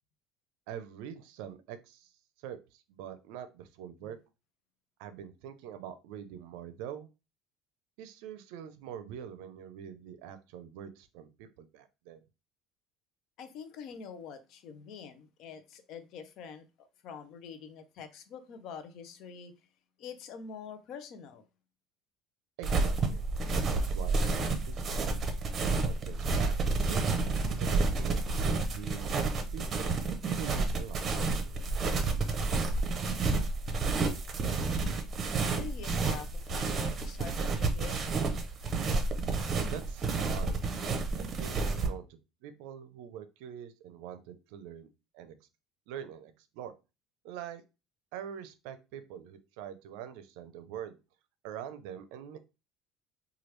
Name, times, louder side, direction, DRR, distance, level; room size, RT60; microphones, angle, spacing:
voice 1, 0.7-2.1 2.4-4.2 5.0-7.1 8.0-12.2 22.6-23.2 23.7-25.1 25.8-27.1 27.6-29.1 29.5-30.0 30.4-31.6 39.7-40.6 41.2-42.1 42.4-44.9 45.1-45.3 45.9-46.7 47.2-47.6 48.1-51.0 51.4-52.4, right 9 dB, 80° right, 0.4 m, -44 dB
voice 2, 13.4-19.5 20.0-21.4 35.5-38.1, left 6 dB, 60° left, 0.5 m, -45 dB
sound 1, 22.6-41.9, right 3 dB, 40° right, 0.6 m, -30 dB
3.0 x 2.3 x 3.1 m
supercardioid pair, 110°, 0 cm